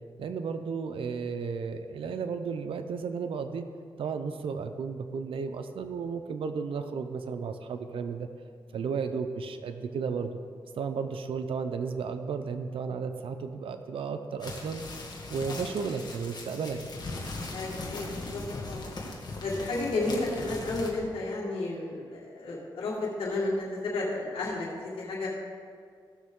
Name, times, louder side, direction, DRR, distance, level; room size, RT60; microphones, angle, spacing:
voice 1, 0.2-3.7 4.0-8.3 8.7-10.4 10.8-14.8 15.3-16.8, right 5 dB, 75° right, 7 dB, 0.6 m, -33 dB
sound 1, 14.4-20.9, left 2 dB, 50° left, 1.9 m, -39 dB
voice 2, 17.5-18.9 19.4-25.3, left 2 dB, 85° left, -5 dB, 2.0 m, -32 dB
16.0 x 6.3 x 3.7 m, 2.1 s
cardioid pair, 65°, 9 cm